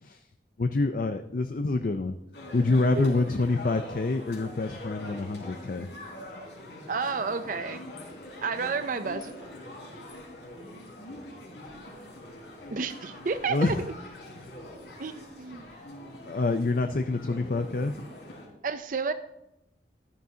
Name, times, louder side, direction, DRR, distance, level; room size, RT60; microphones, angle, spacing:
voice 1, 0.6-2.2 2.5-5.9 13.5-13.8 14.4-14.5 16.3-18.0, left 3 dB, 50° left, 8 dB, 0.5 m, -27 dB
sound 1, 2.3-18.5, left 1 dB, 80° left, 4.0 m, -44 dB
voice 2, 6.9-7.8 8.4-9.3 12.7-13.9 15.0-15.6 18.6-19.1, right 4 dB, 50° right, 10 dB, 0.5 m, -31 dB
14.0 x 12.0 x 2.8 m, 0.87 s
head